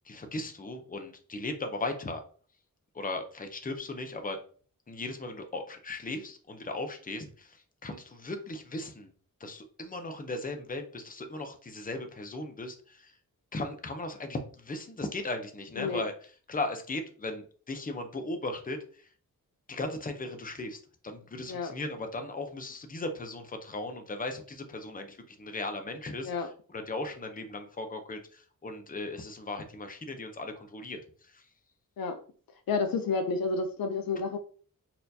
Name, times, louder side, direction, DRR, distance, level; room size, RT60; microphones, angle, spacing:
voice 1, 0.0-2.2 2.9-4.4 4.9-9.1 9.4-13.1 13.5-16.1 16.5-19.1 19.7-26.3 26.7-31.0 31.3-31.4, left 2 dB, 25° left, 6 dB, 0.6 m, -37 dB
voice 2, 15.8-16.1 21.5-21.7 26.2-26.5 32.0-32.2 32.7-34.4, left 4 dB, 85° left, 7 dB, 0.5 m, -30 dB
4.2 x 2.5 x 2.7 m, 0.43 s
wide cardioid pair, 80°, 34 cm